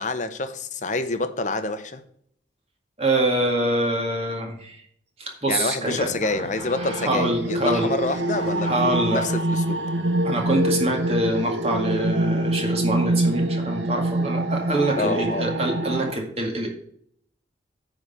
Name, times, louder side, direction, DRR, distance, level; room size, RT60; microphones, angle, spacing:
voice 1, 0.0-2.0 5.5-9.8 15.0-15.5, left 2 dB, 40° left, 10 dB, 0.8 m, -27 dB
voice 2, 3.0-4.8 5.2-7.9 8.6-9.2 10.2-16.7, right 1 dB, 30° right, 1 dB, 1.9 m, -25 dB
sound 1, 5.9-16.1, right 1 dB, 80° right, 0.8 m, -25 dB
9.3 x 4.0 x 7.0 m, 0.65 s
head